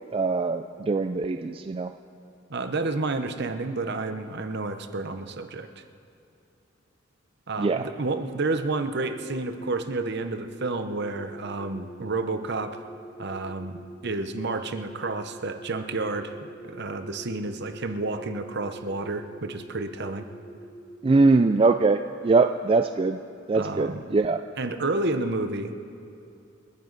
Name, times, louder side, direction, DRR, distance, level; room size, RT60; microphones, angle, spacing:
voice 1, 0.1-1.9 7.6-7.8 21.0-23.2 23.5-24.4, right 3 dB, 30° right, 7 dB, 0.3 m, -22 dB
voice 2, 2.5-5.7 7.5-12.8 13.2-16.3 16.6-20.2 23.5-24.1 24.6-25.7, right 3 dB, 55° right, 8 dB, 0.9 m, -30 dB
sound 1, 9.2-21.7, right 1 dB, 35° left, 4.1 m, -45 dB
28.0 x 9.7 x 4.0 m, 2.7 s
head